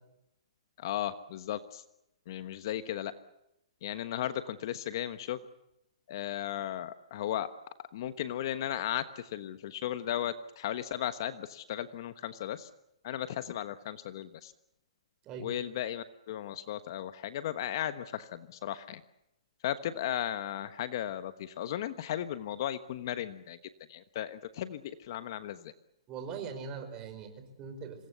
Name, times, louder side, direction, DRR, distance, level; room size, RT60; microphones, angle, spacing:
voice 1, 0.8-1.8 2.3-3.1 3.8-5.4 6.1-7.5 7.9-12.7 13.0-14.5 15.4-19.0 19.6-23.6 23.9-25.7, left 11 dB, 40° left, 12 dB, 1.2 m, -36 dB
voice 2, 26.1-28.1, right 5 dB, 20° right, 6 dB, 4.9 m, -41 dB
26.5 x 21.0 x 8.2 m, 0.85 s
hypercardioid pair, 160°, 3 cm